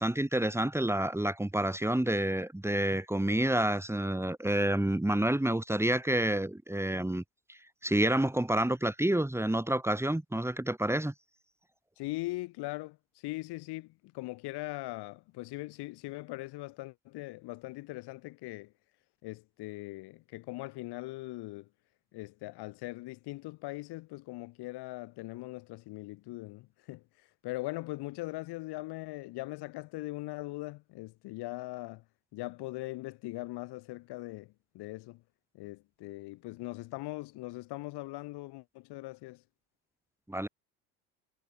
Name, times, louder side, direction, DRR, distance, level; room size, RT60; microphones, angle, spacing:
voice 1, 0.0-7.2 7.5-11.1 40.3-40.5, right 1 dB, 5° right, 4.3 m, -29 dB
voice 2, 12.0-18.7 19.2-21.7 22.1-32.0 32.3-35.2 35.5-39.4, left 20 dB, 60° left, 7.5 m, -40 dB
hypercardioid pair, 70°, 45 cm